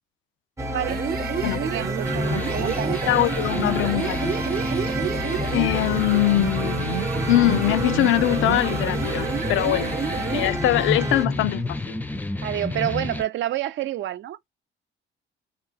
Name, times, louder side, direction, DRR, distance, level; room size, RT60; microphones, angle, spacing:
sound 1, 0.6-11.2, right 1 dB, 15° right, 0.8 m, -29 dB
voice 1, 0.7-1.1 1.6-3.0 12.4-14.5, right 12 dB, 65° right, 0.5 m, -28 dB
sound 2, 0.8-10.6, right 6 dB, 45° right, 0.8 m, -30 dB
sound 3, 2.1-13.2, left 2 dB, 10° left, 0.5 m, -31 dB
voice 2, 3.1-4.4 5.5-6.9 7.3-9.9 10.3-12.0, left 15 dB, 70° left, 0.4 m, -22 dB
3.7 x 2.0 x 2.3 m
cardioid pair, 105°, 21 cm